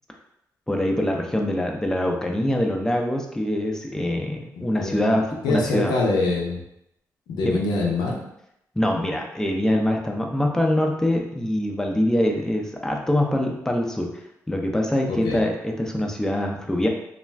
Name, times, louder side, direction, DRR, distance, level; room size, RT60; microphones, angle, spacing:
voice 1, 0.7-5.9 7.4-7.6 8.8-14.1 14.5-16.9, left 1 dB, 10° left, 1 dB, 0.5 m, -24 dB
voice 2, 4.6-5.2 5.4-6.6 7.3-8.2 15.1-15.4, left 3 dB, 90° left, -1 dB, 0.5 m, -24 dB
2.4 x 2.2 x 3.2 m, 0.80 s
cardioid pair, 60°, 7 cm